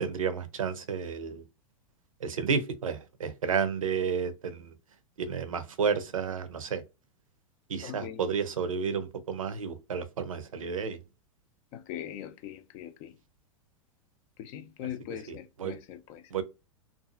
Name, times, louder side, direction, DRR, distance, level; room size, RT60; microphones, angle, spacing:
voice 1, 0.0-1.4 2.2-4.7 5.2-6.8 7.7-11.0 14.8-14.9 15.3-15.8 16.3-16.4, right 6 dB, 80° right, 0.6 m, -31 dB
voice 2, 7.8-8.2 11.7-13.1 14.4-16.2, left 10 dB, 45° left, 0.5 m, -41 dB
2.6 x 2.4 x 2.3 m
figure-of-eight pair, 95°, 17 cm